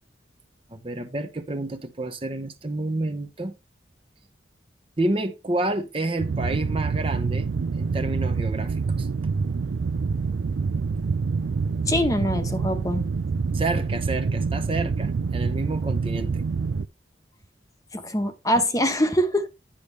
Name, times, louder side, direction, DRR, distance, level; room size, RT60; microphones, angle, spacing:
voice 1, 0.7-3.5 5.0-9.1 13.5-16.4, right 2 dB, 30° right, 0.8 m, -29 dB
sound 1, 6.2-16.9, right 4 dB, 80° right, 0.4 m, -26 dB
voice 2, 11.9-13.1 17.9-19.5, equal, 20° left, 1.0 m, -23 dB
10.0 x 6.6 x 3.3 m
head